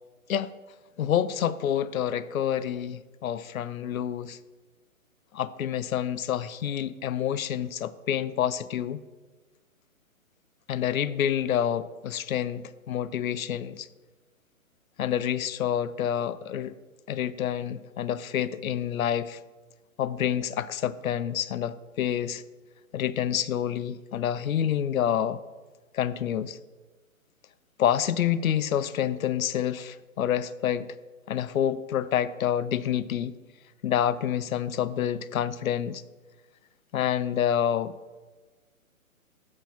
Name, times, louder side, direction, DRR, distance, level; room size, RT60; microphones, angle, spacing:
voice 1, 1.0-4.4 5.3-9.0 10.7-13.9 15.0-16.7 17.1-19.4 20.0-22.4 22.9-25.4 25.9-26.6 27.8-30.9 31.3-33.3 33.8-36.0 36.9-38.0, left 10 dB, 70° left, 0.5 m, -28 dB
7.7 x 3.7 x 5.6 m
figure-of-eight pair, 135°, 43 cm